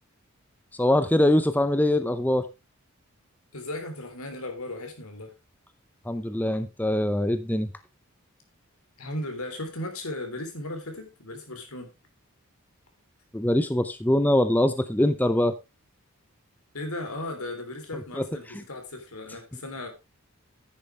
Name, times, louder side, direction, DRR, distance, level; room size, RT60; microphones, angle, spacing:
voice 1, 0.8-2.5 6.1-7.7 13.3-15.5 18.2-18.3, left 1 dB, 10° left, 0.6 m, -23 dB
voice 2, 3.5-5.3 9.0-11.9 16.7-19.9, left 1 dB, 85° left, 3.4 m, -36 dB
10.0 x 9.7 x 3.3 m
head